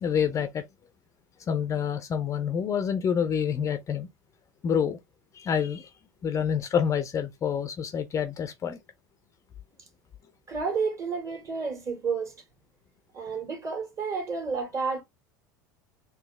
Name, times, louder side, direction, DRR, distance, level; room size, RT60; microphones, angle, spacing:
voice 1, 0.0-0.6 1.5-4.1 4.6-5.0 5.3-5.9 6.2-8.8, left 7 dB, 30° left, 0.5 m, -27 dB
voice 2, 10.5-12.4 13.1-15.0, right 5 dB, 30° right, 1.9 m, -30 dB
4.0 x 2.7 x 3.2 m
hypercardioid pair, 80°, 10 cm